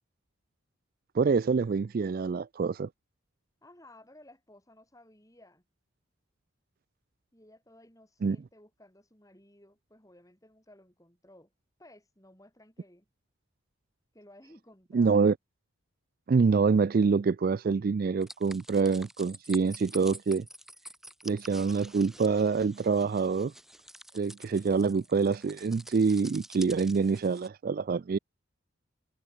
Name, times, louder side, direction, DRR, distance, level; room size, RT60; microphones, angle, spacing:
voice 1, 1.1-2.9 8.2-8.4 14.9-15.3 16.3-20.4 21.2-23.5 24.1-28.2, right 5 dB, 45° right, 0.3 m, -26 dB
voice 2, 3.6-5.6 7.3-11.5 11.8-13.1 14.1-15.2, left 1 dB, 15° left, 6.1 m, -56 dB
sound 1, 18.2-27.5, right 1 dB, ahead, 3.5 m, -49 dB
head